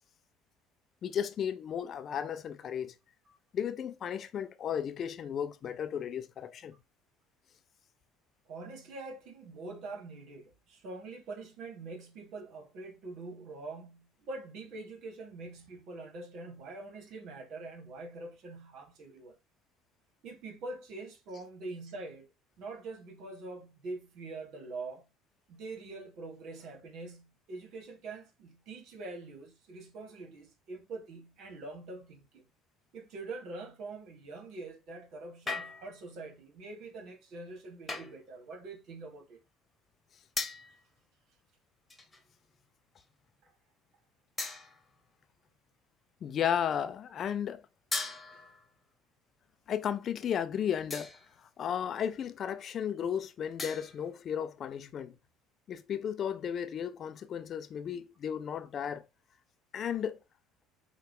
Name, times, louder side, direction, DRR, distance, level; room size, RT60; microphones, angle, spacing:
voice 1, 1.0-2.9 3.5-6.8 46.2-47.6 49.7-51.1 51.6-55.2 55.7-59.1 59.7-60.2, left 8 dB, 45° left, 0.5 m, -34 dB
voice 2, 8.4-19.4 20.2-22.3 22.6-25.1 25.5-32.5 32.9-39.4 43.4-43.5 48.3-48.5, right 3 dB, 60° right, 1.5 m, -44 dB
sound 1, 35.5-36.1 37.9-38.3 40.4-40.8 41.9-42.3 43.0-43.1 44.4-45.0 47.9-48.7 50.9-51.4 53.6-54.1, left 3 dB, 20° left, 1.3 m, -38 dB
5.6 x 2.4 x 3.6 m
hypercardioid pair, 60°, 0 cm